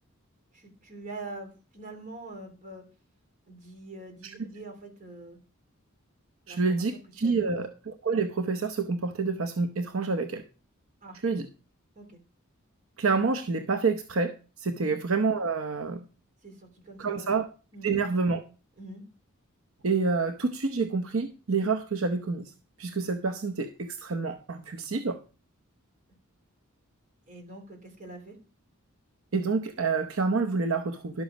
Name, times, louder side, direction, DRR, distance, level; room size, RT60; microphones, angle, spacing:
voice 1, 0.5-2.8 3.5-5.4 6.5-7.7 11.0-11.2 12.0-12.2 14.8-14.9 16.4-17.4 17.7-17.9 18.8-19.0 27.3-28.4, right 2 dB, 40° right, 3 dB, 3.6 m, -44 dB
voice 2, 6.5-10.4 11.2-11.5 13.0-16.0 17.0-17.5 17.8-18.4 19.8-22.5 22.8-25.2 29.3-31.2, right 4 dB, 70° right, 8 dB, 0.8 m, -28 dB
11.5 x 7.2 x 5.1 m, 0.34 s
head